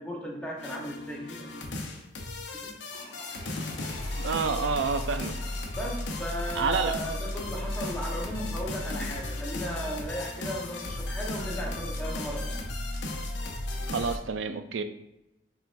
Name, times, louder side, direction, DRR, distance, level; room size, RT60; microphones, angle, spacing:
voice 1, 0.0-1.6 2.6-2.7 5.8-12.6, equal, 5° left, -3 dB, 0.9 m, -36 dB
sound 1, 0.6-14.2, left 2 dB, 70° left, 0.7 m, -35 dB
Toilet flush, 2.8-8.3 9.0-9.1, left 1 dB, 25° left, 1.7 m, -49 dB
voice 2, 4.2-5.3 6.6-6.9 13.9-14.8, right 5 dB, 85° right, 9 dB, 0.4 m, -28 dB
5.8 x 3.7 x 2.5 m, 0.87 s
head